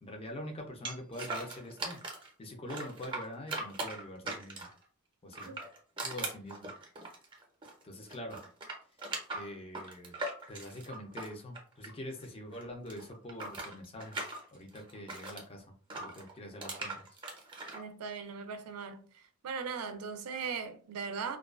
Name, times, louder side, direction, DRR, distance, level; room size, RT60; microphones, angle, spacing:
voice 1, 0.0-2.0 2.4-4.7 5.2-5.6 6.0-6.7 7.8-8.4 9.3-10.1 10.5-14.2 14.5-17.0, left 1 dB, 25° left, 0.5 m, -44 dB
sound 1, 0.8-2.3 2.7-4.8 5.3-12.2 12.5-15.4 15.9-17.8, right 2 dB, 20° right, 0.6 m, -40 dB
voice 2, 17.7-19.0 19.4-21.4, right 5 dB, 80° right, 0.4 m, -38 dB
2.3 x 2.3 x 2.3 m
head